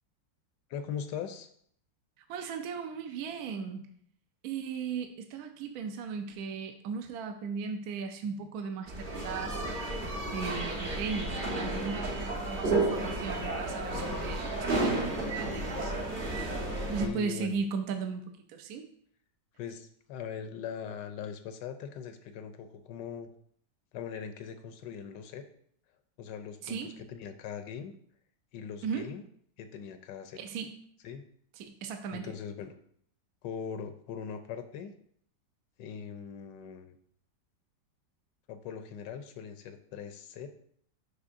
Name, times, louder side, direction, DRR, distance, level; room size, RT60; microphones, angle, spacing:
voice 1, 0.7-1.5 11.2-11.3 17.0-17.6 19.6-23.3 23.9-25.5 26.2-27.9 28.5-29.2 29.6-30.4 31.0-31.2 32.1-32.7 33.4-34.9 35.8-37.0 38.5-40.5, left 7 dB, 85° left, 9 dB, 1.2 m, -41 dB
voice 2, 2.2-3.9 4.4-9.6 10.3-14.4 14.7-15.9 16.9-18.9 26.6-26.9 28.8-29.1 30.4-30.7 31.6-32.3, right 5 dB, 70° right, 6 dB, 1.0 m, -37 dB
sound 1, 8.9-17.1, right 2 dB, 35° right, 0.9 m, -32 dB
8.2 x 5.4 x 2.5 m, 0.63 s
omnidirectional pair, 1.9 m